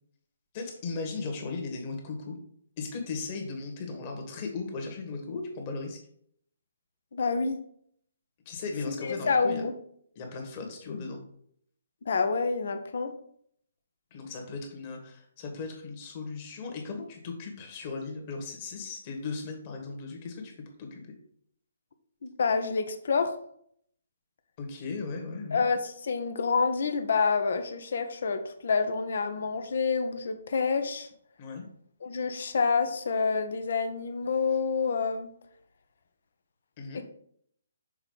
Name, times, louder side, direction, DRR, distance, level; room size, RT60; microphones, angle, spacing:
voice 1, 0.5-2.3 2.8-6.0 8.4-9.6 10.1-11.2 14.1-20.5 20.8-21.1 24.6-25.6 31.4-31.7 36.8-37.0, left 4 dB, 30° left, 3 dB, 1.6 m, -37 dB
voice 2, 7.1-7.6 8.9-9.7 12.0-13.1 22.2-23.3 25.5-31.1 32.0-35.3 36.9-37.0, left 5 dB, 55° left, 8 dB, 0.9 m, -28 dB
6.4 x 4.5 x 3.9 m, 0.65 s
figure-of-eight pair, 135°, 0 cm